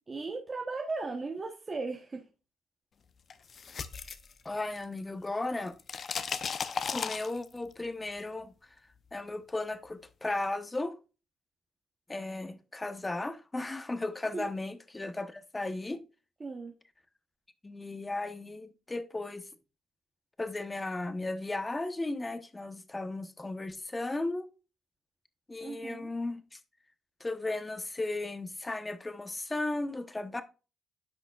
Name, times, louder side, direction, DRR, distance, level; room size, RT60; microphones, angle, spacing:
voice 1, 0.1-2.2 14.3-14.5 16.4-16.7 25.6-26.1, right 3 dB, 30° right, 1.1 m, -37 dB
sound 1, 3.3-5.0 5.3-7.7, left 6 dB, 50° left, 0.8 m, -36 dB
voice 2, 4.4-5.7 6.9-8.5 9.1-11.0 12.1-16.0 17.6-19.5 20.4-24.5 25.5-26.6 27.2-30.4, left 2 dB, 20° left, 1.0 m, -35 dB
10.5 x 5.8 x 2.4 m
cardioid pair, 90°, 0 cm